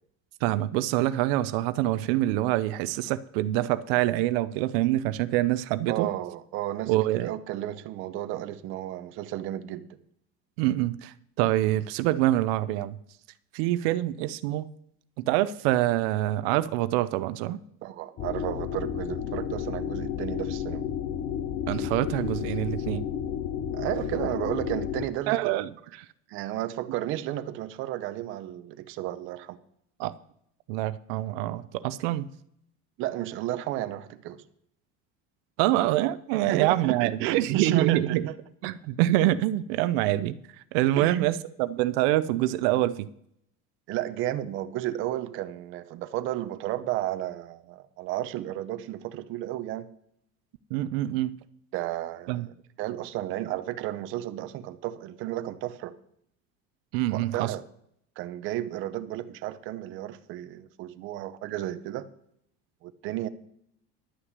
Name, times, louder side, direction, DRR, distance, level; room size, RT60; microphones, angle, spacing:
voice 1, 0.4-6.1 6.9-7.3 10.6-13.0 13.5-14.7 15.2-17.6 21.7-23.0 25.3-25.7 30.0-30.1 30.7-32.3 35.6-38.3 38.6-40.3 40.7-43.1 50.7-51.4 52.3-52.5 56.9-57.6, right 15 dB, 85° right, 0.6 m, -25 dB
voice 2, 5.9-9.9 17.8-20.9 23.7-25.5 26.3-29.6 33.0-34.4 36.5-38.4 38.6-38.7 41.0-41.3 43.9-49.9 51.7-55.9 57.1-57.6 58.2-62.1 62.8-63.3, right 13 dB, 40° right, 0.7 m, -33 dB
sound 1, 18.2-25.1, left 9 dB, 35° left, 0.6 m, -32 dB
11.0 x 5.9 x 8.0 m
cardioid pair, 170°, 30 cm